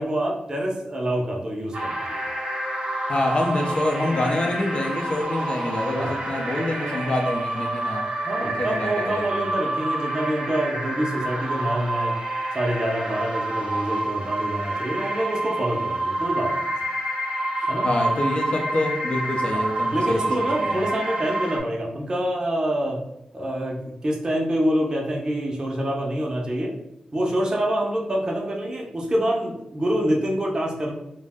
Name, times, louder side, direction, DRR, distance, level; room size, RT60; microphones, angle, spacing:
voice 1, 0.0-2.3 6.0-6.2 8.2-12.1 12.5-16.7 17.7-17.9 19.5-19.6 19.9-23.0 23.3-26.7 27.1-30.9, right 1 dB, 30° right, -2 dB, 0.5 m, -26 dB
sound 1, 1.7-21.6, right 1 dB, 60° right, 0.8 m, -28 dB
voice 2, 3.1-8.1 8.4-9.4 17.8-20.8, left 1 dB, 50° left, 1 dB, 0.6 m, -26 dB
2.5 x 2.1 x 3.4 m, 0.84 s
wide cardioid pair, 120°, 2 cm